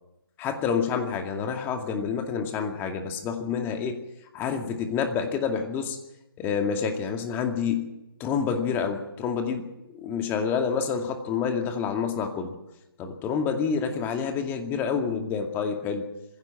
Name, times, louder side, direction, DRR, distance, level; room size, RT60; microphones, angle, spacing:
voice 1, 0.4-4.0 4.3-6.0 6.4-7.9 8.2-12.5 13.0-16.0, left 6 dB, 15° left, 4 dB, 2.3 m, -28 dB
22.5 x 16.0 x 7.5 m, 0.92 s
figure-of-eight pair, 145°, 13 cm